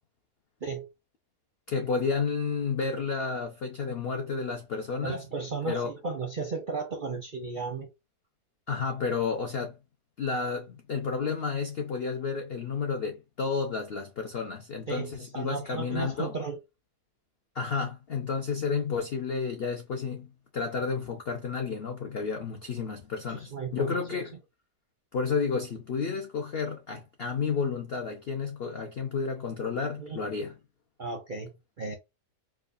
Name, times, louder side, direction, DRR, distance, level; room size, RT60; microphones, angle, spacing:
voice 1, 1.7-5.2 5.6-5.9 8.7-9.8 10.2-16.3 17.5-24.3 25.1-30.6, left 5 dB, 65° left, 0.6 m, -31 dB
voice 2, 5.0-7.9 14.9-16.6 23.3-24.2 30.0-30.2 31.0-31.9, right 4 dB, 55° right, 0.5 m, -35 dB
4.7 x 2.3 x 2.5 m
omnidirectional pair, 1.8 m